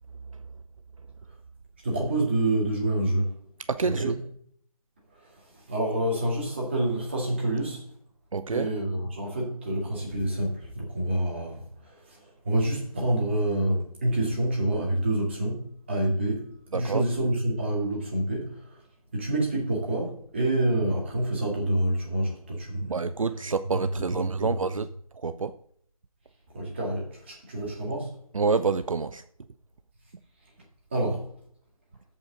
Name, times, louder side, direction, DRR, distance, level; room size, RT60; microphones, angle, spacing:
voice 1, 1.8-3.3 3.8-4.2 5.1-7.8 8.5-18.8 19.1-23.4 23.7-24.6 26.5-28.2 30.9-31.3, right 1 dB, 20° right, 2.0 m, -28 dB
voice 2, 3.7-4.1 8.3-8.7 16.7-17.0 22.9-24.9 25.2-25.5 28.3-29.2, right 4 dB, 65° right, 0.5 m, -27 dB
14.0 x 5.5 x 3.9 m
figure-of-eight pair, 175°, 19 cm